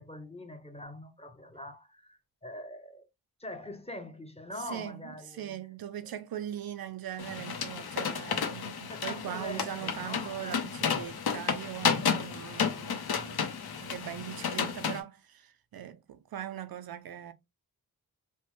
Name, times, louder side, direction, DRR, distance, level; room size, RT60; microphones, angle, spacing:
voice 1, 0.0-3.1 3.4-5.6 6.0-6.1 8.9-10.7, left 1 dB, 15° left, 0.7 m, -43 dB
voice 2, 4.7-17.3, right 11 dB, 80° right, 0.5 m, -41 dB
sound 1, 7.2-15.0, left 6 dB, 85° left, 0.7 m, -32 dB
3.0 x 2.0 x 3.1 m
wide cardioid pair, 80°, 36 cm